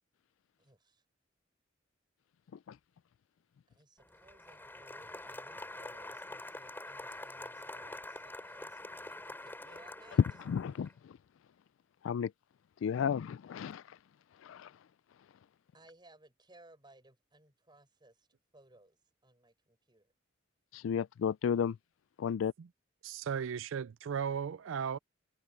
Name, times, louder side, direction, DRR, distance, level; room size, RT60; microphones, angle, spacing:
voice 1, 0.6-1.0 3.7-10.2 15.7-20.1, right 2 dB, 25° right, 6.0 m, -61 dB
Applause, 4.0-10.9, left 2 dB, 10° left, 4.3 m, -46 dB
voice 2, 10.5-11.2 12.0-12.3 12.8-14.0 14.4-14.7 20.7-21.8 22.2-22.5, left 7 dB, 90° left, 0.3 m, -33 dB
voice 3, 23.0-25.0, right 7 dB, 85° right, 0.4 m, -36 dB
head